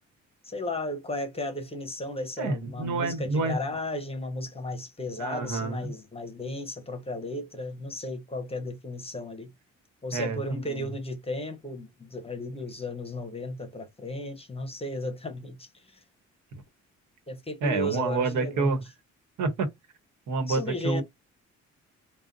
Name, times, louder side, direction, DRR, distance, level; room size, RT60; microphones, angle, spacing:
voice 1, 0.4-9.5 10.0-16.0 17.3-18.8 20.5-21.0, left 1 dB, 20° left, 0.9 m, -34 dB
voice 2, 2.4-3.6 5.2-5.9 10.1-10.9 16.5-16.6 17.6-18.8 19.4-19.7 20.3-21.0, right 3 dB, 75° right, 1.2 m, -28 dB
4.8 x 2.3 x 2.7 m
cardioid pair, 90°, 30 cm